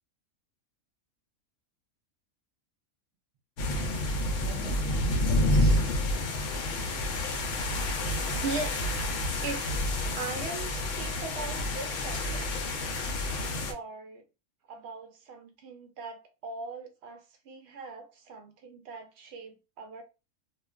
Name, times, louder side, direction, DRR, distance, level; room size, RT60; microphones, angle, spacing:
sound 1, 3.6-13.7, left 1 dB, 70° left, 0.9 m, -29 dB
voice 1, 4.4-5.8 8.1-8.9 9.4-9.8 10.1-12.5 13.7-14.2 14.7-20.0, right 3 dB, 60° right, 0.8 m, -40 dB
2.5 x 2.3 x 2.2 m
omnidirectional pair, 1.4 m